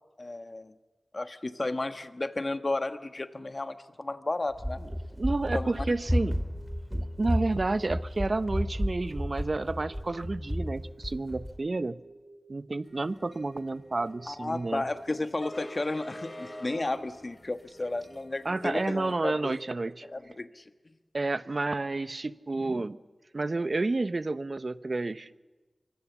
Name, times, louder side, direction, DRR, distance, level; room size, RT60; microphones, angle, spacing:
voice 1, 0.2-0.7 1.1-4.8 5.5-5.7 14.3-19.5 20.1-20.6, left 2 dB, 45° left, 9 dB, 1.4 m, -33 dB
Run, 4.5-11.6, equal, 5° left, 2.3 m, -32 dB
voice 2, 5.2-6.4 6.9-12.0 12.5-14.8 18.4-20.1 21.1-23.0 23.3-25.4, right 2 dB, 50° right, 14 dB, 0.8 m, -30 dB
sound 1, 6.0-20.1, right 2 dB, 80° right, 6.4 m, -56 dB
sound 2, 12.9-19.2, left 1 dB, 25° left, 3.4 m, -45 dB
24.5 x 23.5 x 7.3 m, 1.2 s
wide cardioid pair, 60°, 0 cm